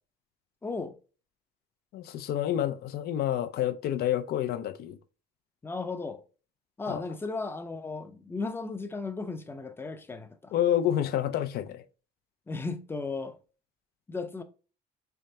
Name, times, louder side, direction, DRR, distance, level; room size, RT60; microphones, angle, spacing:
voice 1, 0.6-1.0 5.6-6.2 6.8-10.5 12.5-13.4 14.1-14.4, left 3 dB, 15° left, 0.5 m, -35 dB
voice 2, 1.9-5.0 6.9-7.0 10.5-11.8, left 11 dB, 65° left, 0.5 m, -28 dB
3.5 x 3.4 x 2.7 m
cardioid pair, 110°, 17 cm